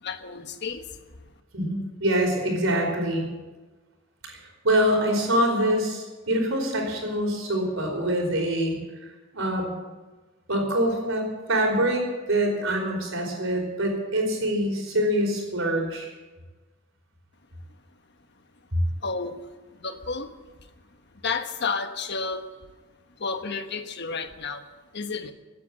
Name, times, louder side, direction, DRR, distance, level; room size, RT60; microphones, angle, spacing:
voice 1, 0.0-1.0 19.0-19.4 19.7-20.3 21.2-22.5 23.2-24.7 24.9-25.3, left 4 dB, 55° left, 8 dB, 1.3 m, -31 dB
voice 2, 1.5-3.2 4.2-8.7 9.3-9.7 10.5-16.1 18.7-18.8, right 1 dB, 75° right, 2 dB, 4.6 m, -25 dB
17.0 x 9.5 x 8.8 m, 1.3 s
head